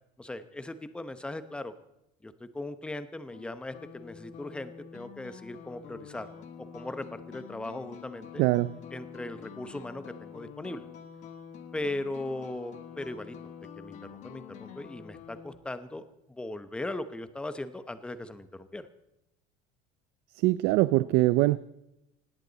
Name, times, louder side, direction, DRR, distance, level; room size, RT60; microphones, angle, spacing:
voice 1, 0.2-1.7 2.2-8.4 8.9-10.9 11.7-18.9, left 2 dB, 5° left, 12 dB, 0.8 m, -39 dB
sound 1, 3.3-15.6, left 8 dB, 40° left, 1.4 m, -47 dB
voice 2, 8.4-8.7 20.4-21.6, right 19 dB, 60° right, 16 dB, 0.5 m, -23 dB
19.5 x 16.5 x 4.0 m, 0.89 s
cardioid pair, 170°, 18 cm